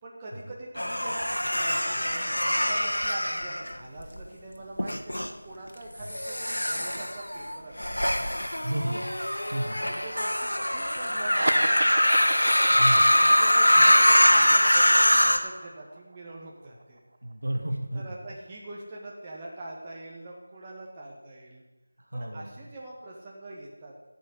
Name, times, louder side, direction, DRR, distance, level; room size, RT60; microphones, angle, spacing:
voice 1, 0.0-8.7 9.8-12.2 13.2-17.0 17.9-21.6 22.1-23.9, right 2 dB, 20° right, -5 dB, 1.7 m, -43 dB
sound 1, 0.8-4.2 4.8-5.3 6.0-15.4, equal, 80° left, 1.3 m, -23 dB
voice 2, 8.6-9.1 9.5-9.9 12.7-13.1 17.2-18.2 22.1-22.5, right 1 dB, 70° right, 2 dB, 2.0 m, -32 dB
sound 2, 11.1-18.0, right 2 dB, 50° right, 1.1 m, -36 dB
14.0 x 5.4 x 8.4 m, 1.2 s
figure-of-eight pair, 165°, 0 cm